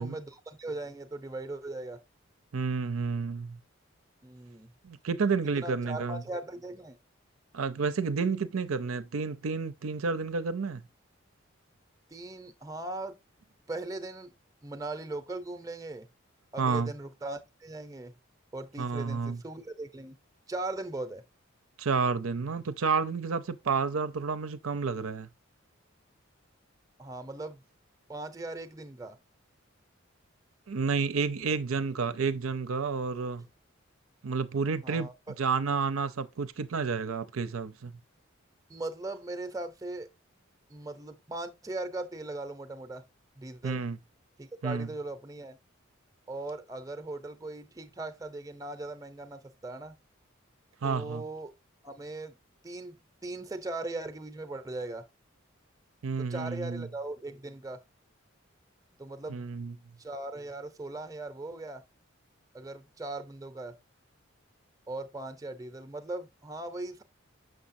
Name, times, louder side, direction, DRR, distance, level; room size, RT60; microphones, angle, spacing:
voice 1, 0.0-2.0 4.2-4.7 5.6-7.0 12.1-13.2 13.7-14.3 14.6-16.1 16.5-18.2 18.5-20.2 20.5-21.2 27.0-27.6 28.1-29.2 34.8-35.1 38.7-40.1 40.7-43.0 43.4-43.8 44.4-45.6 46.3-50.0 50.8-51.5 51.8-52.4 52.6-55.1 56.2-57.8 59.0-59.5 60.0-61.8 62.5-63.8 64.9-67.0, right 2 dB, 15° right, 0.6 m, -39 dB
voice 2, 2.5-3.6 4.8-6.2 7.5-10.8 16.6-16.9 18.8-19.4 21.8-25.3 30.7-33.5 34.2-35.1 35.4-38.0 43.6-44.0 44.6-44.9 50.8-51.2 56.0-56.9 59.3-59.7, right 5 dB, 85° right, 0.6 m, -30 dB
6.5 x 6.3 x 2.6 m
head